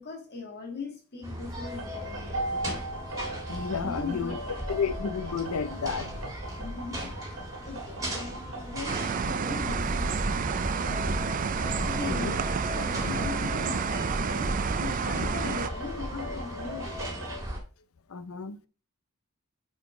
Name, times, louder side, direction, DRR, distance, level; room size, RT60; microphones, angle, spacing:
voice 1, 0.0-2.7 3.8-4.7 6.6-10.7 11.9-12.3 12.8-17.0, left 4 dB, 50° left, 1.8 m, -40 dB
sound 1, 1.2-17.6, right 1 dB, 15° right, 1.8 m, -36 dB
sound 2, 1.6-17.4, equal, 70° right, 1.6 m, -40 dB
voice 2, 3.5-4.3 4.7-6.3 11.8-12.4 12.9-13.3 18.1-18.6, left 5 dB, 70° left, 0.6 m, -32 dB
sound 3, 8.9-15.7, right 6 dB, 35° right, 0.3 m, -30 dB
6.1 x 4.4 x 4.9 m
head